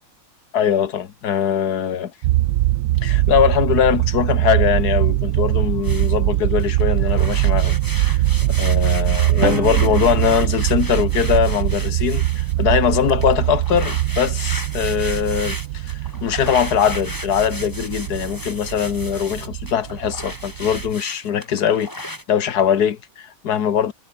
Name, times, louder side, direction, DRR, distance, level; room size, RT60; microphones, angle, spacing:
voice 1, 0.5-2.1 3.0-8.2 8.5-23.9, left 8 dB, 65° left, 1.8 m, -21 dB
sound 1, 2.2-20.9, right 15 dB, 70° right, 1.1 m, -22 dB
sound 2, 5.8-6.2 6.5-12.6 13.1-22.2, left 1 dB, 10° left, 4.7 m, -35 dB
Drum, 9.4-11.5, right 3 dB, 45° right, 3.7 m, -29 dB
omnidirectional pair, 1.9 m